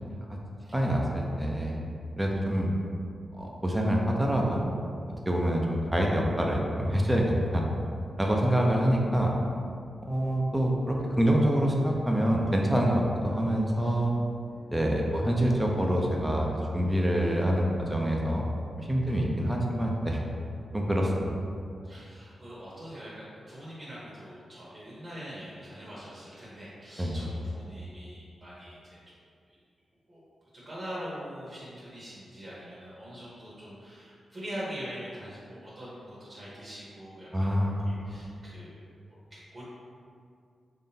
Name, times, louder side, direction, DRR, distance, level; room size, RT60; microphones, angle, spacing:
voice 1, 0.7-1.8 2.2-2.7 3.3-4.7 5.3-7.6 8.2-9.3 10.0-14.1 14.7-18.4 18.8-20.2 20.7-21.3 27.0-27.2 37.3-38.2, equal, 15° right, -1 dB, 0.5 m, -26 dB
voice 2, 21.8-29.0 29.5-29.6 30.1-30.2 30.5-37.5 37.8-38.9 39.3-39.6, equal, 40° right, -8 dB, 1.1 m, -43 dB
3.7 x 3.2 x 2.7 m, 2.3 s
cardioid pair, 65°, 0 cm